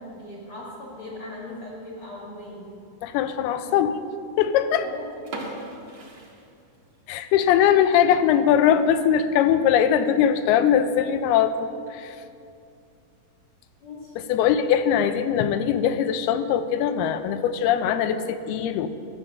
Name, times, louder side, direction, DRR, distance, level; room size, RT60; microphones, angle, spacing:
voice 1, 0.0-2.7 3.6-3.7 4.8-5.3 13.8-14.2, left 1 dB, 45° left, -4 dB, 2.2 m, -39 dB
voice 2, 3.0-4.0 4.4-4.9 7.1-12.2 14.2-18.9, left 9 dB, 85° left, 10 dB, 2.6 m, -21 dB
sound 1, 5.3-7.1 7.4-7.5 8.1-8.2 8.7-8.8 9.0-9.1 9.9-10.2, right 2 dB, 55° right, 1.2 m, -38 dB
12.5 x 9.1 x 6.5 m, 2.5 s
omnidirectional pair, 4.5 m